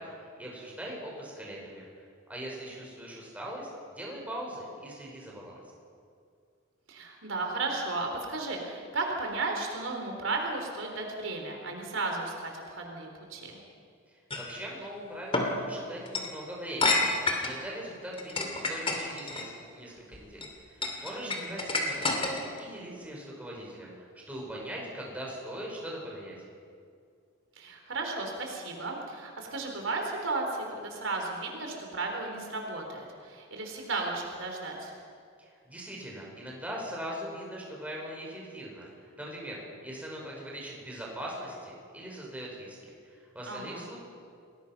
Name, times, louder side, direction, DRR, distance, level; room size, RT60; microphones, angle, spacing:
voice 1, 0.0-3.7 4.0-5.6 14.1-26.4 35.4-42.8 43.0-44.0, right 1 dB, 5° right, -3 dB, 5.6 m, -41 dB
voice 2, 6.9-13.6 21.2-21.5 27.6-34.9 43.5-43.9, right 3 dB, 70° right, 2 dB, 4.0 m, -34 dB
sound 1, 14.3-14.5 15.3-15.5 16.1-16.3 16.8-17.6 18.1-19.4 20.1-20.5 20.8-22.6, left 3 dB, 25° left, 2.9 m, -28 dB
30.0 x 21.0 x 6.1 m, 2.3 s
head